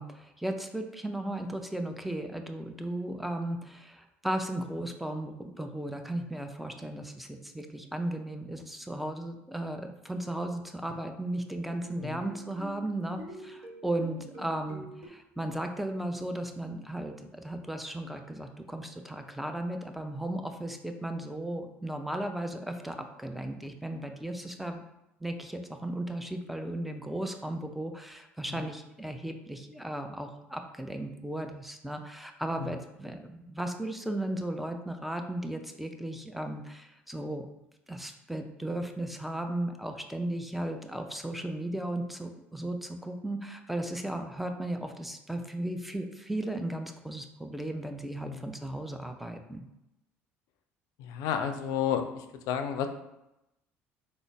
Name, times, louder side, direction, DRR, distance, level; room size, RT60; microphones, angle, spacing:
voice 1, 0.0-24.8 25.2-37.5 37.9-49.7, right 1 dB, ahead, 5 dB, 0.5 m, -36 dB
sound 1, 11.8-15.1, right 1 dB, 45° right, 1.2 m, -47 dB
voice 2, 51.0-52.9, left 8 dB, 65° left, 7 dB, 0.4 m, -32 dB
3.7 x 2.0 x 3.4 m, 0.88 s
hypercardioid pair, 60°, 7 cm